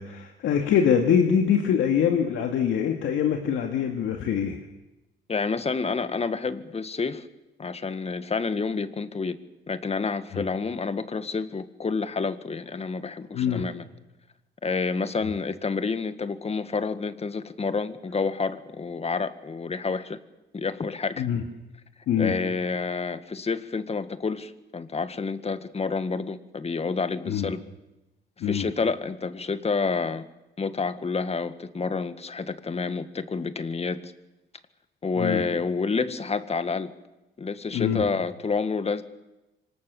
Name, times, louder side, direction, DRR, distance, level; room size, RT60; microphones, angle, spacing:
voice 1, 0.0-4.6 10.3-10.4 13.3-13.7 21.2-21.4 22.1-22.3 27.3-27.5 28.4-28.7 35.2-35.4 37.7-38.0, left 8 dB, 80° left, 4 dB, 2.4 m, -24 dB
voice 2, 5.3-7.3 7.6-13.9 14.6-20.2 20.5-21.3 22.2-27.6 28.4-30.2 30.6-34.1 35.0-36.9 37.4-39.0, left 4 dB, 30° left, 11 dB, 1.9 m, -29 dB
27.0 x 24.5 x 7.2 m, 0.99 s
cardioid pair, 90°, 20 cm